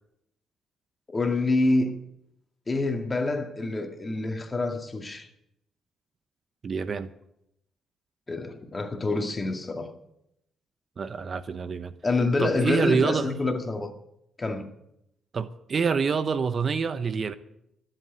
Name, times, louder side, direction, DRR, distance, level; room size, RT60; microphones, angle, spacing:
voice 1, 1.1-2.0 2.7-5.3 8.3-9.9 12.0-13.9 14.4-14.7, left 2 dB, 25° left, 2.0 m, -27 dB
voice 2, 6.6-7.1 11.0-11.9 12.4-13.3 15.3-17.3, right 5 dB, 45° right, 0.8 m, -27 dB
13.5 x 7.7 x 9.3 m
cardioid pair, 90°, 0 cm